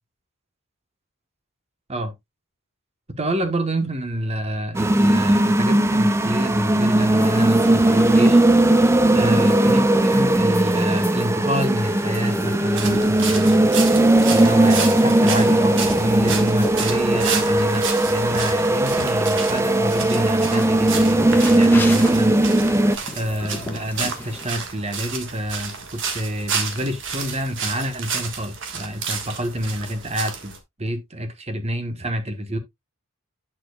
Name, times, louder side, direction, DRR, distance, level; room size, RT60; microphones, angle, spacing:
voice 1, 3.2-8.4 9.1-13.7 14.3-22.5 23.1-32.6, equal, 30° right, 1.1 m, -28 dB
sound 1, 4.7-23.0, right 1 dB, 10° right, 0.4 m, -18 dB
sound 2, 7.0-24.5, left 1 dB, 10° left, 1.2 m, -35 dB
sound 3, 12.7-30.6, right 5 dB, 55° right, 1.5 m, -31 dB
9.0 x 6.7 x 2.3 m
head